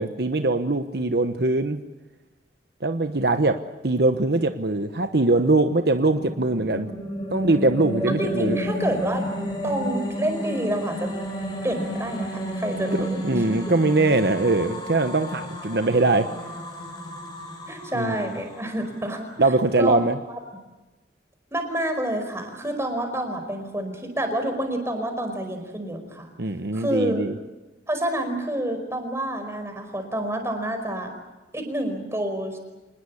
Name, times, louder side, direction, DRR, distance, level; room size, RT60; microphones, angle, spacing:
voice 1, 0.0-1.8 2.8-6.9 7.3-8.6 12.9-16.3 17.9-18.2 19.4-20.2 26.4-27.3, right 2 dB, 65° right, 8 dB, 1.1 m, -22 dB
sound 1, 6.0-19.2, equal, 25° left, 6.4 m, -32 dB
voice 2, 8.1-9.2 9.6-11.1 11.6-13.2 13.4-13.5 17.7-19.3 19.8-20.0 20.3-20.4 21.5-26.3 26.7-27.2 27.9-31.1 31.5-32.6, right 1 dB, 15° right, 5 dB, 5.0 m, -28 dB
27.0 x 20.0 x 8.5 m, 1.1 s
head